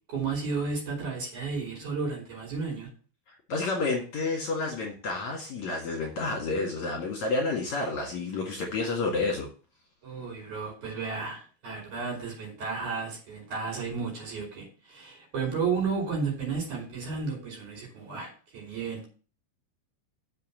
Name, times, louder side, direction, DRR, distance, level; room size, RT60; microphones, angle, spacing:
voice 1, 0.1-2.9 10.0-19.1, right 5 dB, 45° right, 0 dB, 6.2 m, -33 dB
voice 2, 3.3-9.5, left 3 dB, 50° left, 0 dB, 2.8 m, -30 dB
7.5 x 6.6 x 7.5 m, 0.37 s
omnidirectional pair, 4.7 m